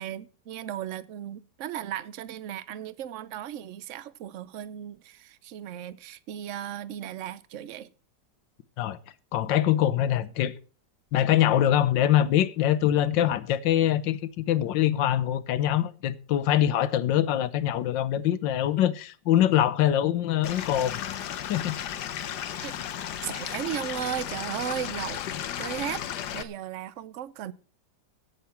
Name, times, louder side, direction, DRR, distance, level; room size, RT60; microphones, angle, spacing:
voice 1, 0.0-7.9 22.5-22.8 23.2-25.2 25.6-26.0 26.3-27.5, right 11 dB, 60° right, 0.8 m, -36 dB
voice 2, 9.3-10.5 11.1-21.0 21.5-22.0, left 11 dB, 85° left, 1.5 m, -24 dB
Stream / Liquid, 20.4-26.4, left 10 dB, 70° left, 1.4 m, -34 dB
17.0 x 6.9 x 5.7 m
omnidirectional pair, 1.9 m